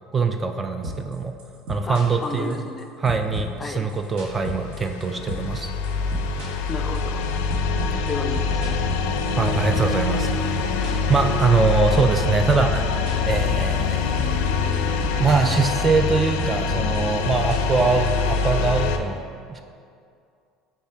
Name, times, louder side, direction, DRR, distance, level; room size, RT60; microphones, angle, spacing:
voice 1, 0.1-1.4 1.7-2.6 3.0-5.7 7.9-8.1 9.4-10.3 11.1-12.9 13.3-14.4 15.2-19.6, right 4 dB, 25° right, 6 dB, 0.4 m, -23 dB
sound 1, 0.8-1.1 1.4-2.8 3.1-5.0 5.3-5.6 5.8-10.0 10.3-11.7 11.9-13.9 14.2-14.5 14.7-15.6 15.8-18.5, right 1 dB, 70° right, 1.3 m, -33 dB
voice 2, 1.8-2.9 3.6-3.8 6.7-7.2 8.0-8.9, left 3 dB, 25° left, 5 dB, 0.5 m, -32 dB
sound 2, 4.0-19.0, left 5 dB, 75° left, 0.4 m, -24 dB
5.3 x 4.3 x 4.5 m, 2.4 s
supercardioid pair, 85°, 0 cm